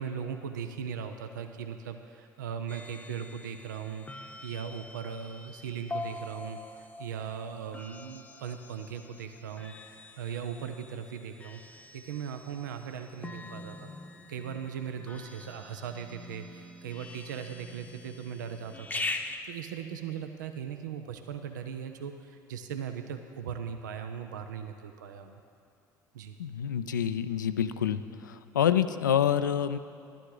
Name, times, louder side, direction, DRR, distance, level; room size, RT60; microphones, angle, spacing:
voice 1, 0.0-13.9 14.3-25.4 26.1-26.4, right 7 dB, 80° right, 7 dB, 0.5 m, -39 dB
sound 1, 2.7-19.4, left 2 dB, 15° left, 0.8 m, -43 dB
voice 2, 26.4-28.0 28.3-29.8, left 9 dB, 90° left, 11 dB, 0.4 m, -27 dB
11.5 x 11.5 x 3.8 m, 2.4 s
hypercardioid pair, 60°, 10 cm